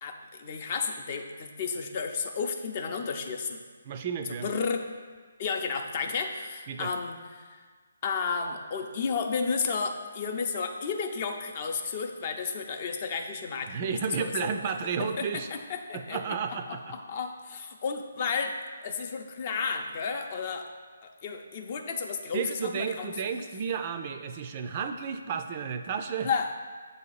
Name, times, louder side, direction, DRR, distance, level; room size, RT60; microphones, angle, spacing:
voice 1, 0.0-3.6 4.4-4.8 5.4-7.6 8.0-14.5 15.0-16.2 16.5-18.6 18.8-20.7 21.0-23.2 26.2-26.7, left 5 dB, 40° left, 5 dB, 0.5 m, -32 dB
voice 2, 3.8-4.5 6.7-6.9 13.7-15.5 15.9-17.0 22.3-26.3, right 6 dB, 35° right, 7 dB, 0.3 m, -32 dB
7.4 x 2.8 x 5.5 m, 1.5 s
figure-of-eight pair, 150°, 0 cm